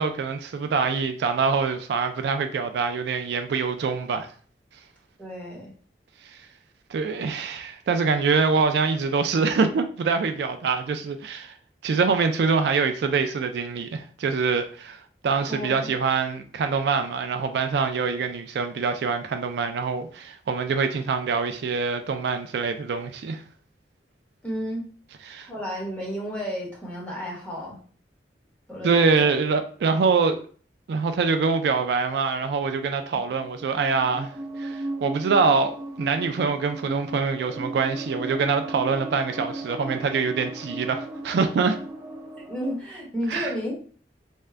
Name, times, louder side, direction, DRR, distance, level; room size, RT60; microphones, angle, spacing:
voice 1, 0.0-4.3 6.2-6.4 6.9-11.5 11.8-23.4 25.3-25.5 28.8-30.4 30.9-41.8 43.3-43.5, right 5 dB, 65° right, 0.3 m, -24 dB
voice 2, 5.2-5.7 15.5-15.9 24.4-24.8 25.4-27.8 28.7-29.3 42.5-43.7, equal, 5° left, 1.1 m, -32 dB
sound 1, 33.3-42.8, right 2 dB, 20° right, 0.8 m, -36 dB
3.6 x 2.2 x 3.2 m
head